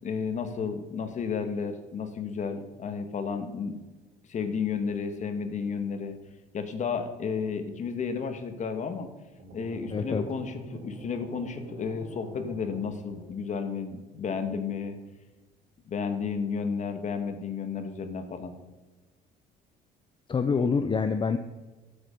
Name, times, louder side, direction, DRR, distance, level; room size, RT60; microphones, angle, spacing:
voice 1, 0.0-3.8 4.3-6.1 6.5-9.1 9.5-15.0 15.9-18.5, left 5 dB, 45° left, 8 dB, 1.7 m, -32 dB
sound 1, 9.4-13.7, right 1 dB, 50° right, 3.3 m, -45 dB
voice 2, 9.9-10.3 20.3-21.4, left 5 dB, 30° left, 9 dB, 0.7 m, -26 dB
12.5 x 8.7 x 5.2 m, 1.2 s
cardioid pair, 110°, 17 cm